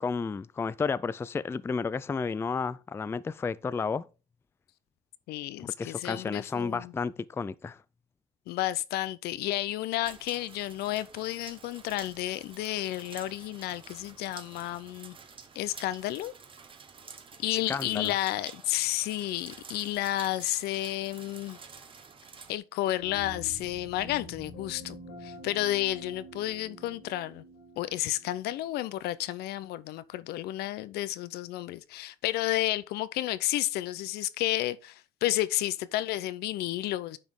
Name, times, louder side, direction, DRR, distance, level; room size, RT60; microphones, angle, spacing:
voice 1, 0.0-4.0 5.6-7.8 17.7-18.1, left 5 dB, 15° left, 0.4 m, -32 dB
voice 2, 5.3-6.9 8.5-15.2 15.5-16.3 17.4-21.6 22.5-25.0 25.2-27.4 27.8-37.2, left 15 dB, 65° left, 0.6 m, -31 dB
sound 1, 10.0-22.6, right 5 dB, 30° right, 1.2 m, -50 dB
sound 2, 23.0-29.6, equal, 90° left, 5.1 m, -47 dB
9.4 x 5.1 x 3.6 m
supercardioid pair, 95°, 18 cm